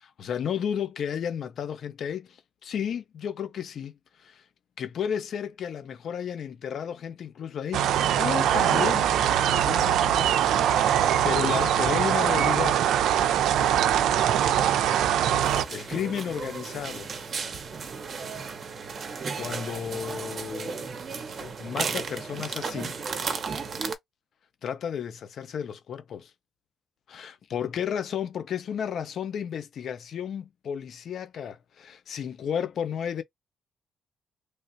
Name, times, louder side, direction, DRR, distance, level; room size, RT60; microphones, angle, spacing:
voice 1, 0.0-3.9 4.2-4.4 4.8-7.9 8.2-9.1 9.5-10.5 10.9-12.8 15.7-17.1 19.4-20.8 21.4-23.0 24.6-26.3 27.1-33.2, left 8 dB, 55° left, 0.6 m, -33 dB
sound 1, 7.7-15.6, right 10 dB, 85° right, 0.4 m, -22 dB
sound 2, 15.4-23.9, right 5 dB, 40° right, 0.6 m, -34 dB
3.2 x 2.5 x 2.6 m
cardioid pair, 150°, 0 cm